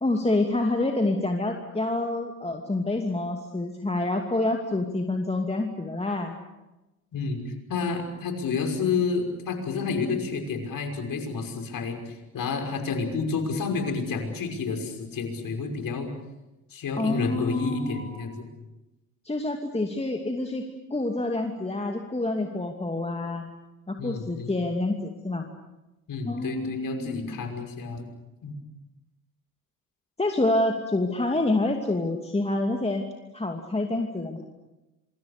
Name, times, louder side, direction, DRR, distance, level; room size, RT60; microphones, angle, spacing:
voice 1, 0.0-6.4 17.0-18.2 19.2-20.6 20.9-23.5 23.9-25.4 26.3-27.4 30.2-33.0 33.3-34.4, left 2 dB, 15° left, 3 dB, 2.6 m, -27 dB
voice 2, 7.1-16.1 16.7-18.5 24.0-24.5 26.1-28.1 28.4-28.5, left 4 dB, 50° left, 4 dB, 5.9 m, -30 dB
26.5 x 25.5 x 6.8 m, 1.0 s
hypercardioid pair, 55°, 43 cm